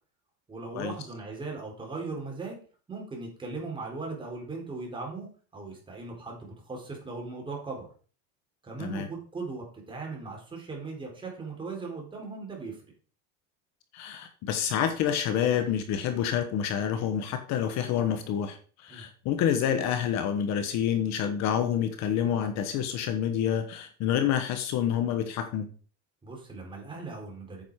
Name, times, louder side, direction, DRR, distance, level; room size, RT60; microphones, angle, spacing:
voice 1, 0.5-2.6 2.9-5.3 5.5-7.9 8.6-12.8 18.9-19.1 26.2-27.6, right 3 dB, 15° right, 0 dB, 4.1 m, -38 dB
voice 2, 13.9-25.7, left 9 dB, 50° left, 8 dB, 1.3 m, -28 dB
9.2 x 7.3 x 4.9 m, 0.41 s
supercardioid pair, 145°, 35 cm